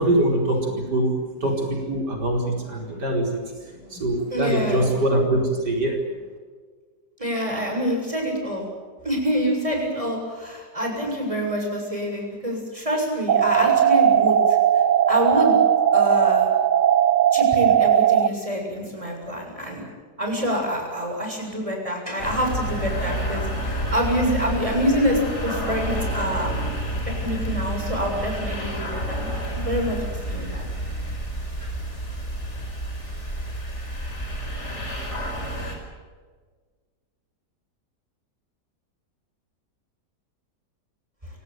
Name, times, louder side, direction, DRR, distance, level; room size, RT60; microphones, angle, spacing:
voice 1, 0.0-3.4 3.9-6.0, right 1 dB, 80° right, 1 dB, 5.3 m, -23 dB
voice 2, 4.3-4.9 7.2-8.7 9.0-14.6 15.1-15.6 15.9-16.5 17.3-19.8 20.2-26.5 27.2-29.3 29.5-30.0 30.3-30.6 31.6-31.7, equal, 20° right, 1 dB, 7.5 m, -26 dB
sound 1, 13.3-18.3, right 9 dB, 55° right, 1.2 m, -18 dB
sound 2, 22.2-35.7, equal, 40° left, 5.6 m, -29 dB
28.0 x 18.0 x 9.4 m, 1.5 s
omnidirectional pair, 1.8 m